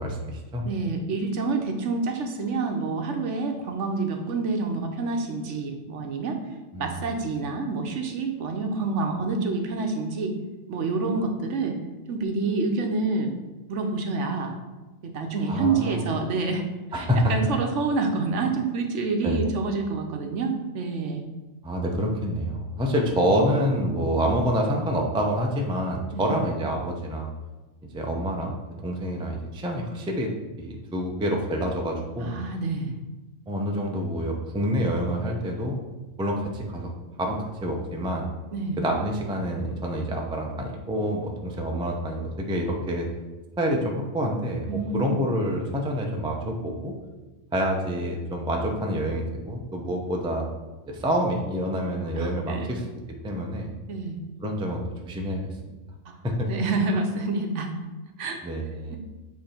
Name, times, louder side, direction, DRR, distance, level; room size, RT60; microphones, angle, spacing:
voice 1, 0.0-0.6 6.7-7.0 15.5-16.0 16.9-17.3 19.2-19.4 21.6-27.3 27.9-28.6 28.8-30.3 30.6-32.4 33.5-35.8 36.2-36.9 37.2-38.3 38.8-43.1 43.6-46.9 47.5-50.5 50.9-52.8 53.2-53.7 54.4-55.4 55.7-55.8 56.2-56.5 58.4-58.9, equal, 5° right, 0 dB, 0.4 m, -27 dB
voice 2, 0.6-6.4 6.8-10.4 10.7-11.8 12.1-13.3 13.7-14.6 15.0-16.7 16.9-21.2 26.1-26.4 32.2-33.0 38.5-38.8 44.7-45.1 52.2-52.7 53.9-54.2 56.1-56.2 56.5-57.7 58.2-58.4 58.9-59.0, right 3 dB, 65° right, 4 dB, 1.1 m, -28 dB
7.7 x 3.4 x 4.3 m, 1.2 s
omnidirectional pair, 1.4 m